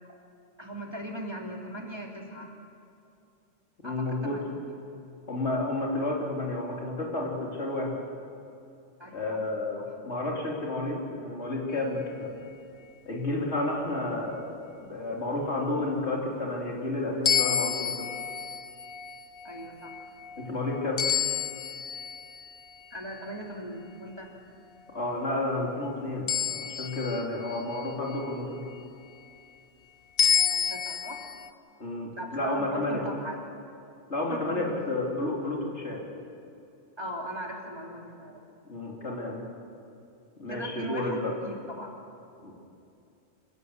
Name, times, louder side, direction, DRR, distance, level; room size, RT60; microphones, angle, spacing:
voice 1, 0.6-2.5 3.8-4.5 9.0-9.4 9.7-9.9 19.4-20.0 22.9-24.3 30.4-31.2 32.1-33.4 34.3-34.8 37.0-38.4 40.5-41.9, right 1 dB, 20° right, -1 dB, 2.9 m, -39 dB
voice 2, 3.8-4.4 5.3-8.0 9.1-12.3 13.1-18.1 20.4-21.0 24.9-28.6 31.8-33.1 34.1-36.0 38.7-39.4 40.4-41.3 42.4-42.5, left 2 dB, 75° left, -2 dB, 3.9 m, -31 dB
sound 1, 17.3-22.8 26.3-28.3 30.2-31.5, left 7 dB, 55° left, 0.9 m, -30 dB
26.5 x 16.5 x 8.2 m, 2.5 s
omnidirectional pair, 1.2 m